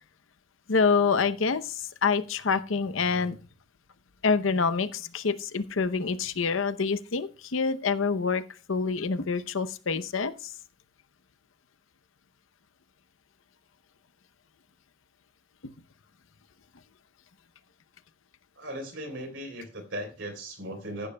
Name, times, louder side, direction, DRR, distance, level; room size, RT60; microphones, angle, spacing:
voice 1, 0.7-3.4 4.2-8.4 8.7-10.5, left 5 dB, 90° left, 12 dB, 0.8 m, -26 dB
voice 2, 18.6-21.1, right 1 dB, 70° right, 6 dB, 3.5 m, -37 dB
15.0 x 11.0 x 2.2 m, 0.35 s
head